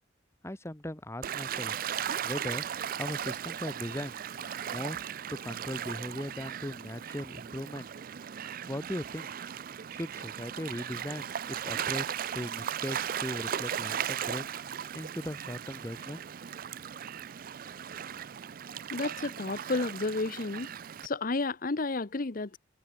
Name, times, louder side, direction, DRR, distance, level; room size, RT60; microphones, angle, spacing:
voice 1, 0.4-1.8 2.2-4.1 4.7-5.0 5.3-7.9 8.7-9.3 9.9-14.4 14.9-16.2, left 1 dB, 15° left, 1.3 m, -38 dB
Gull seagull / Waves surf, 1.2-21.1, right 9 dB, 50° right, 0.4 m, -37 dB
voice 2, 18.9-20.7 21.0-22.6, left 3 dB, 45° left, 0.8 m, -31 dB
open air
head